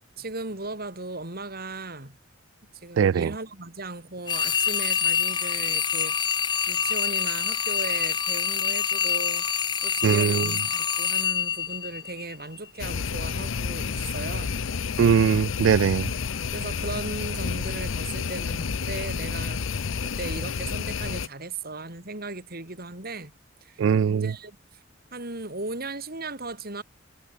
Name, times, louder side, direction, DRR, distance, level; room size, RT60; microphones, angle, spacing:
voice 1, 0.0-2.2 2.7-6.3 6.7-9.5 9.8-14.6 16.5-23.3 23.6-24.8 25.1-26.8, right 3 dB, 50° right, 4.5 m, -37 dB
voice 2, 3.0-3.3 10.0-10.5 15.0-16.1 23.8-24.3, right 7 dB, 70° right, 0.3 m, -21 dB
sound 1, 4.3-12.5, left 7 dB, 25° left, 0.5 m, -26 dB
sound 2, 12.8-21.3, left 5 dB, 85° left, 0.7 m, -30 dB
head